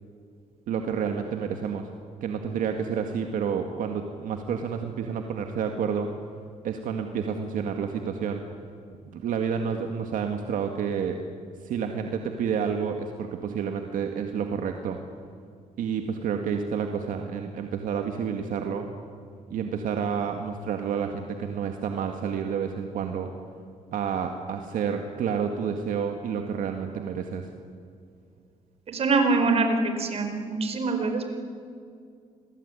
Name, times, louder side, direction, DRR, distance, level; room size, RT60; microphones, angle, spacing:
voice 1, 0.7-1.9 2.2-6.1 6.6-8.4 9.1-11.2 11.6-15.0 15.8-18.9 19.5-23.3 23.9-27.5, right 7 dB, 75° right, 4 dB, 2.0 m, -29 dB
voice 2, 28.9-31.3, right 3 dB, 45° right, 6 dB, 4.6 m, -24 dB
28.0 x 21.5 x 9.9 m, 2.3 s
cardioid pair, 130°, 14 cm